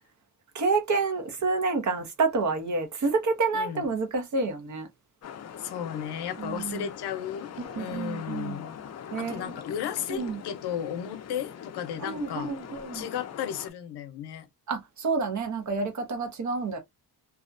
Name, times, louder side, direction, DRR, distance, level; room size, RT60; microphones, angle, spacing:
voice 1, 0.5-4.9 6.4-6.9 7.6-8.6 9.1-9.5 10.1-10.4 12.0-13.1 14.7-16.8, right 4 dB, 50° right, 0.7 m, -29 dB
voice 2, 3.5-3.8 5.6-8.8 9.2-12.5 12.9-14.5, left 9 dB, 85° left, 0.6 m, -34 dB
sound 1, 5.2-13.7, left 8 dB, 45° left, 0.4 m, -42 dB
2.4 x 2.1 x 2.5 m
wide cardioid pair, 125°, 39 cm